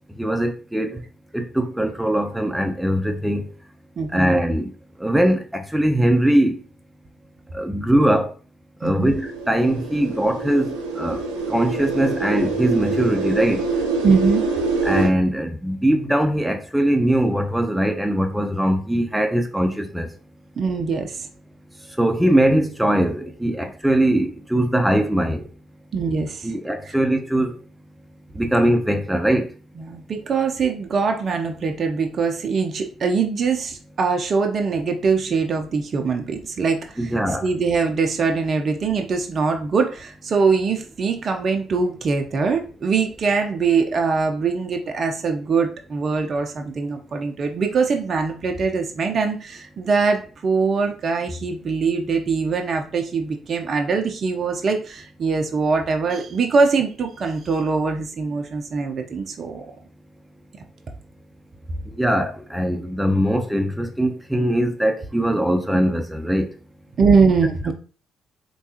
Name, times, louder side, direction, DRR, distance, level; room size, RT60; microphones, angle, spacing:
voice 1, 0.1-1.0 1.3-3.5 4.1-4.7 5.0-6.6 7.5-8.3 8.8-11.2 11.5-13.6 14.8-20.1 22.0-25.5 26.4-27.6 28.3-29.5 37.0-37.5 61.9-66.5, right 1 dB, 5° right, 0.8 m, -21 dB
voice 2, 4.0-4.3 8.8-9.1 14.0-14.4 20.6-21.3 25.9-26.5 26.8-26.9 29.8-37.0 37.4-59.7 67.0-67.7, right 4 dB, 50° right, 0.6 m, -22 dB
sound 1, 9.0-15.1, right 3 dB, 85° right, 0.6 m, -25 dB
3.5 x 3.1 x 2.8 m
hypercardioid pair, 45°, 0 cm